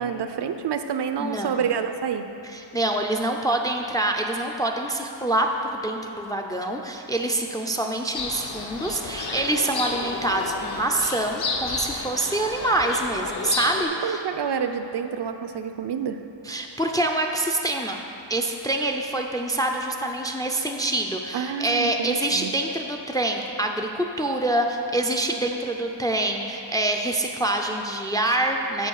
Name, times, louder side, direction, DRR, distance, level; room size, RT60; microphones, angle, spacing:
voice 1, 0.0-2.2 14.0-16.2 21.3-22.5, right 7 dB, 60° right, 8 dB, 0.5 m, -28 dB
voice 2, 1.2-1.6 2.5-14.2 16.4-18.0 18.3-28.9, right 1 dB, 10° left, 2 dB, 0.3 m, -26 dB
sound 1, 8.1-13.8, left 3 dB, 55° left, 0.8 m, -31 dB
7.8 x 4.4 x 6.4 m, 2.9 s
wide cardioid pair, 120°, 47 cm